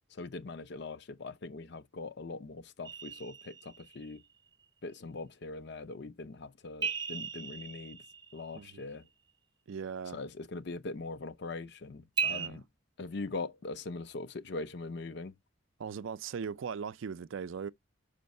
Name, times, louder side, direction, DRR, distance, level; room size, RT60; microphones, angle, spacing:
voice 1, 0.1-4.2 4.8-8.0 8.3-9.1 10.1-12.6 13.0-15.4, left 3 dB, 55° left, 0.5 m, -41 dB
sound 1, 2.8-4.2 6.8-8.8 12.2-12.5, right 6 dB, 20° right, 0.5 m, -37 dB
voice 2, 9.7-10.2 12.3-12.6 15.8-17.7, right 6 dB, 70° right, 0.4 m, -39 dB
5.5 x 5.1 x 5.2 m
head